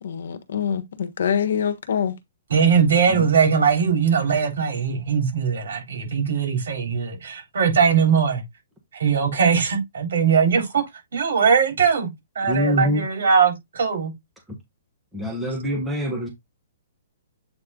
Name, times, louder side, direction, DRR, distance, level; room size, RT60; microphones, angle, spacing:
voice 1, 0.0-2.1, left 8 dB, 65° left, 1.2 m, -25 dB
voice 2, 2.5-8.4 8.9-10.8 11.1-14.1, right 6 dB, 70° right, 3.9 m, -20 dB
voice 3, 12.5-13.0 15.1-16.3, equal, 5° right, 1.2 m, -24 dB
8.0 x 3.3 x 3.7 m
hypercardioid pair, 170°, 0 cm